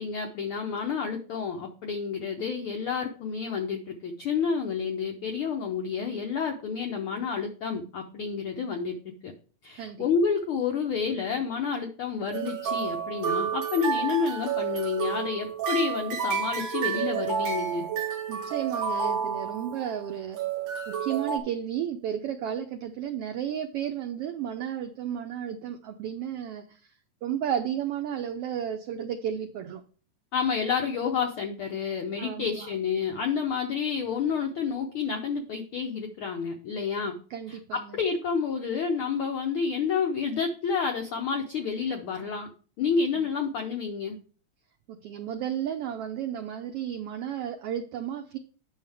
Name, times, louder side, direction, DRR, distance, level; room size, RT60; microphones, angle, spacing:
voice 1, 0.0-9.0 9.2-9.3 9.6-17.9 30.3-37.2 37.5-42.5 42.8-44.2, left 6 dB, 80° left, 3 dB, 1.2 m, -29 dB
sound 1, 12.3-20.0 20.3-21.4, right 7 dB, 55° right, 1.6 m, -30 dB
voice 2, 18.3-20.4 20.9-26.9 27.2-29.8 32.2-32.7 37.3-38.0 43.1-43.3 44.9-48.4, right 9 dB, 85° right, 6 dB, 1.3 m, -33 dB
9.0 x 6.3 x 3.4 m, 0.40 s
omnidirectional pair, 3.3 m